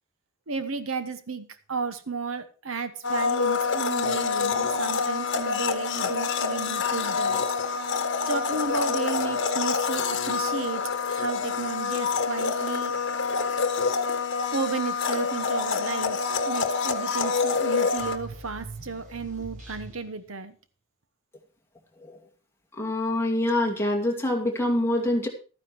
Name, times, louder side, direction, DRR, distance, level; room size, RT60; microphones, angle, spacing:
voice 1, 0.5-7.4 8.3-12.9 14.5-16.2 16.5-20.5, right 4 dB, 75° right, 11 dB, 1.2 m, -33 dB
Domestic sounds home sounds, 3.0-18.2, left 5 dB, 60° left, 1.4 m, -27 dB
sound 1, 18.0-20.3, right 2 dB, 40° right, 3.6 m, -42 dB
voice 2, 22.8-25.3, left 1 dB, 10° left, 0 dB, 2.3 m, -25 dB
13.0 x 9.5 x 4.6 m, 0.36 s
head